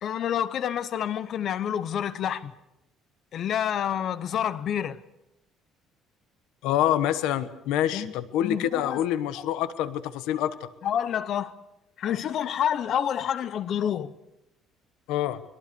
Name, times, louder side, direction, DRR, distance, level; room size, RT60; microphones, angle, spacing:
voice 1, 0.0-2.5 3.3-5.0 7.9-8.1 8.4-9.0 10.8-11.5 12.0-14.1, left 9 dB, 40° left, 0.7 m, -28 dB
voice 2, 6.6-10.7 15.1-15.4, left 11 dB, 90° left, 1.1 m, -26 dB
23.0 x 22.5 x 6.8 m
cardioid pair, 175°, 0 cm